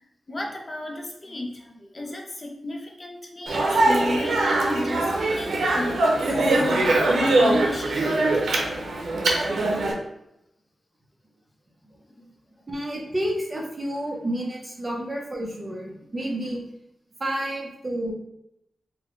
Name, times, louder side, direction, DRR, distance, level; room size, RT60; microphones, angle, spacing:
voice 1, 0.0-8.1 12.1-12.4 16.1-16.2, left 2 dB, 30° left, 1 dB, 0.6 m, -33 dB
Speech, 3.5-9.9, right 2 dB, 85° right, 0.6 m, -22 dB
voice 2, 12.7-16.6 17.2-18.1, right 1 dB, 25° right, -2 dB, 0.8 m, -30 dB
4.3 x 2.3 x 3.0 m, 0.81 s
wide cardioid pair, 130°, 0 cm